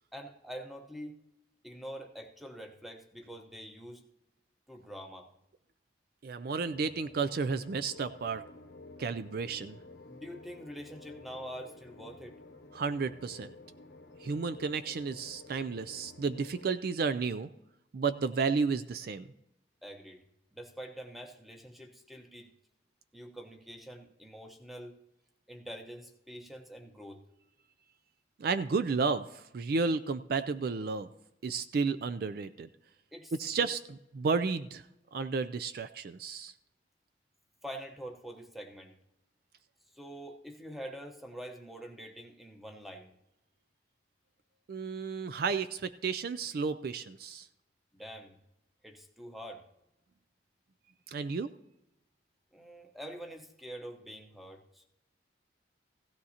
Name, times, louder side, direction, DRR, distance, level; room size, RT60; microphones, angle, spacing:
voice 1, 0.1-1.2 1.6-4.0 4.7-5.3 10.1-12.4 19.8-20.2 20.5-22.5 23.1-25.0 25.5-27.2 33.1-33.3 33.6-33.7 37.6-39.0 39.9-43.1 47.9-48.4 48.8-49.6 52.5-54.9, equal, ahead, 3 dB, 0.9 m, -45 dB
voice 2, 6.2-8.4 9.0-9.8 12.7-13.5 14.2-17.5 17.9-19.3 28.4-31.1 31.4-32.7 33.4-33.8 34.1-34.8 35.1-36.5 44.7-47.5 51.1-51.5, right 4 dB, 55° right, 13 dB, 0.3 m, -32 dB
sound 1, 6.6-16.7, left 2 dB, 60° left, 0.8 m, -52 dB
16.0 x 12.0 x 2.8 m, 0.90 s
head